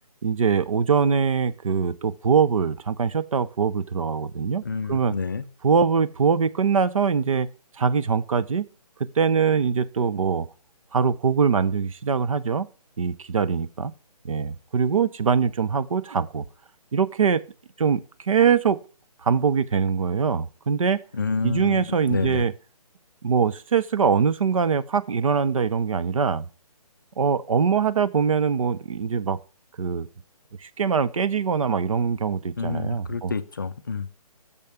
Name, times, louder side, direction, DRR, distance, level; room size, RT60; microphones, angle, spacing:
voice 1, 0.2-5.1 5.6-7.5 7.8-8.7 9.0-10.5 10.9-12.7 13.0-13.9 14.2-16.4 16.9-17.4 17.8-18.8 19.2-21.0 21.4-22.5 23.2-26.5 27.2-29.4 29.8-30.1 30.6-33.3, right 6 dB, 55° right, 0.5 m, -23 dB
voice 2, 4.6-5.5 21.1-22.4 32.6-34.1, left 4 dB, 30° left, 0.4 m, -29 dB
6.8 x 5.2 x 5.7 m
hypercardioid pair, 165°, 20 cm